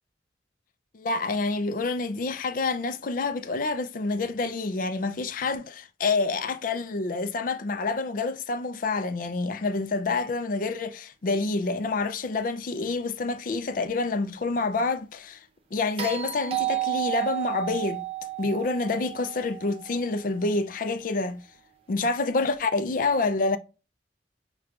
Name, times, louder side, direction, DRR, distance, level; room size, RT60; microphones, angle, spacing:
voice 1, 0.9-15.4 15.7-18.0 18.4-21.4 21.9-23.6, left 3 dB, 45° left, 0.4 m, -27 dB
sound 1, 16.0-20.2 22.5-22.6, right 14 dB, 30° right, 0.7 m, -32 dB
6.2 x 2.3 x 2.4 m
head